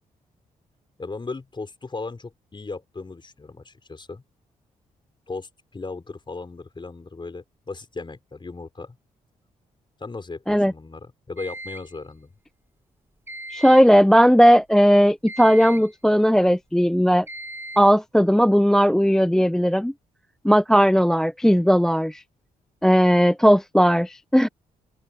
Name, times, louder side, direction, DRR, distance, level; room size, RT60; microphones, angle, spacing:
voice 1, 1.0-4.2 5.3-9.0 10.0-12.3, left 3 dB, 30° left, 5.3 m, -36 dB
sound 1, 11.4-12.0 13.3-13.9 15.3-16.0 17.3-17.9, right 1 dB, 15° right, 4.1 m, -38 dB
voice 2, 13.5-17.3 17.8-19.9 20.4-22.2 22.8-24.5, equal, 5° left, 0.5 m, -17 dB
open air
supercardioid pair, 60°, 16 cm